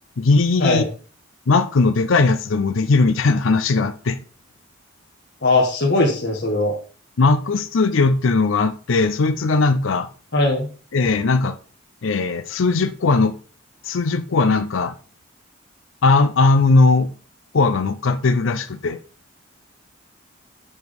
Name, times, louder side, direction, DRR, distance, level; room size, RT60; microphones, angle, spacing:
voice 1, 0.2-0.9 1.5-4.2 7.2-10.1 10.9-11.6 12.0-13.3 13.8-14.9 16.0-17.1 17.5-19.0, left 3 dB, 70° left, 0.5 m, -18 dB
voice 2, 5.4-6.7 10.3-10.7, left 2 dB, 50° left, 1.5 m, -19 dB
7.1 x 6.1 x 3.5 m
head